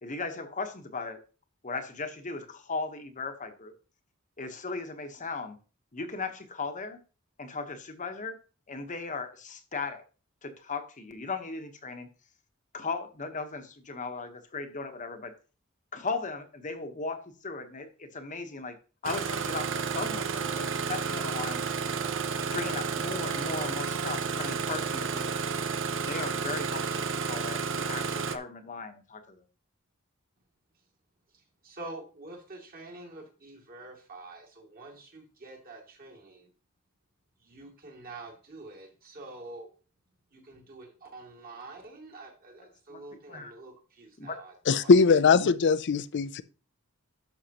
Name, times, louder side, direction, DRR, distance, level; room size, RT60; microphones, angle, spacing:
voice 1, 0.0-1.2 1.6-3.7 4.4-5.6 5.9-7.0 7.4-8.4 8.7-10.0 10.4-12.1 12.7-15.3 15.9-18.8 19.0-21.7 22.5-25.4 26.1-29.4 42.9-43.0 43.3-43.5 44.2-44.4, left 4 dB, 35° left, 1.0 m, -37 dB
Engine starting, 19.0-28.4, right 5 dB, 60° right, 0.7 m, -31 dB
voice 2, 31.3-36.5 37.4-39.7 40.3-44.9, right 2 dB, 45° right, 2.5 m, -47 dB
voice 3, 44.7-46.4, left 5 dB, 55° left, 0.5 m, -21 dB
11.5 x 6.3 x 2.9 m
head